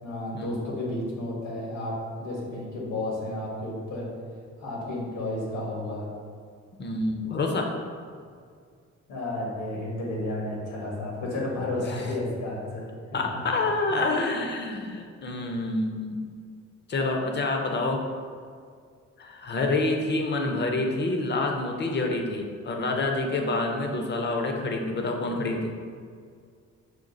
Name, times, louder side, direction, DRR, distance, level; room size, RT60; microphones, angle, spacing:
voice 1, 0.0-4.1 4.6-6.1 9.1-13.2 13.9-14.0, left 1 dB, 85° left, -3 dB, 1.4 m, -32 dB
voice 2, 6.8-7.8 11.9-12.0 13.1-16.3 16.9-18.0 19.2-25.7, left 2 dB, 35° left, 3 dB, 0.6 m, -27 dB
5.0 x 2.3 x 3.9 m, 2.1 s
cardioid pair, 90°, 30 cm